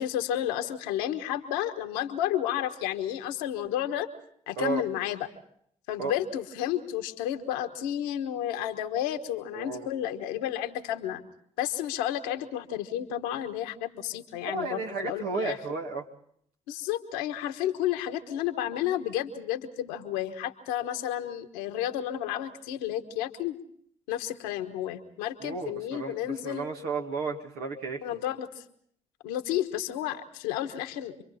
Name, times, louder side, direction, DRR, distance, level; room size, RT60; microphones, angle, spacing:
voice 1, 0.0-4.1 4.5-5.3 5.9-11.2 11.6-15.6 16.7-23.6 24.1-26.7 28.0-28.6 29.2-31.2, left 11 dB, 90° left, 7 dB, 1.3 m, -31 dB
voice 2, 4.6-4.9 6.0-6.2 9.5-9.9 14.4-16.0 25.4-28.2, right 4 dB, 80° right, 2 dB, 2.1 m, -33 dB
29.0 x 23.5 x 4.2 m, 0.65 s
hypercardioid pair, 45°, 16 cm